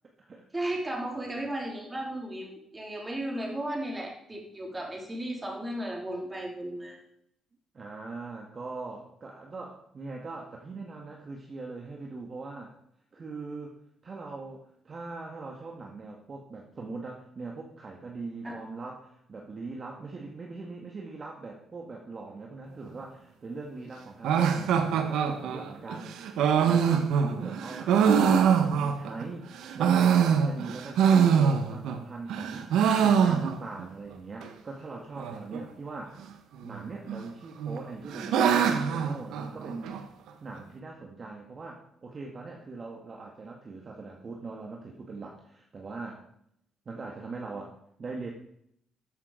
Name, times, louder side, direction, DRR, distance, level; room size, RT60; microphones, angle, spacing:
voice 1, 0.5-7.0 18.4-18.6, right 1 dB, 20° right, 0 dB, 3.7 m, -35 dB
voice 2, 7.7-12.7 13.1-13.8 14.0-26.4 26.6-36.3 36.6-39.9 40.4-46.2 46.8-48.3, right 3 dB, 40° right, 0 dB, 1.8 m, -41 dB
sound 1, 24.2-29.2 29.6-32.0 32.3-33.8 34.1-34.2 34.4-34.5 35.2-35.6 36.6-37.2 37.6-40.0, right 7 dB, 85° right, 1.2 m, -24 dB
13.5 x 7.4 x 5.1 m, 0.72 s
cardioid pair, 90°, 0 cm